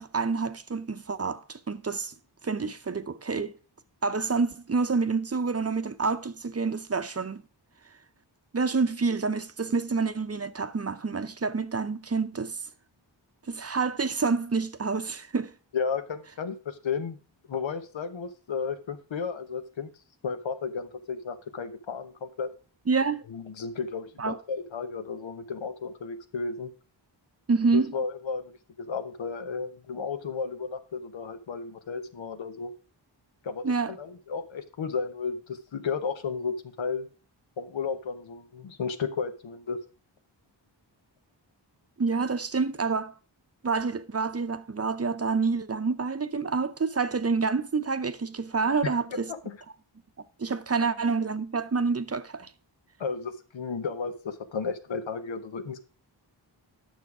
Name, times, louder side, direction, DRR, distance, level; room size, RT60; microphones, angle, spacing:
voice 1, 0.0-2.1 2.4-3.5 4.0-7.4 8.5-12.6 13.5-15.5 22.9-23.2 24.2-24.4 27.5-27.9 33.6-33.9 42.0-43.1 43.6-49.3 50.4-52.5, right 4 dB, 35° right, 0.7 m, -28 dB
voice 2, 15.7-17.2 17.5-19.9 20.2-22.5 23.3-26.7 27.7-32.7 33.4-37.1 37.6-39.8 48.8-49.6 53.0-55.9, left 5 dB, 90° left, 1.0 m, -33 dB
9.3 x 6.5 x 4.8 m
wide cardioid pair, 70°, 45 cm